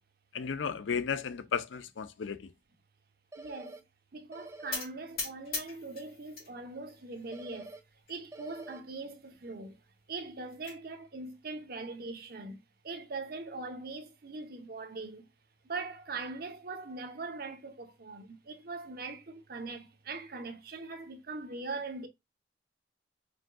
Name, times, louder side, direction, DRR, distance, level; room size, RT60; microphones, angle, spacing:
voice 1, 0.3-2.5, left 6 dB, 85° left, 0.5 m, -34 dB
sound 1, 3.3-3.8 4.3-4.8 7.3-7.8 8.3-8.8, right 2 dB, 15° right, 0.3 m, -46 dB
voice 2, 3.4-3.8 4.1-7.8 8.1-9.8 10.1-15.3 15.6-22.1, right 3 dB, 50° right, 0.7 m, -41 dB
sound 2, 4.7-6.5 6.9-7.5 8.1-8.2 8.5-8.6 8.9-9.0 10.1-10.8, left 4 dB, 50° left, 2.5 m, -40 dB
5.0 x 3.6 x 2.2 m
head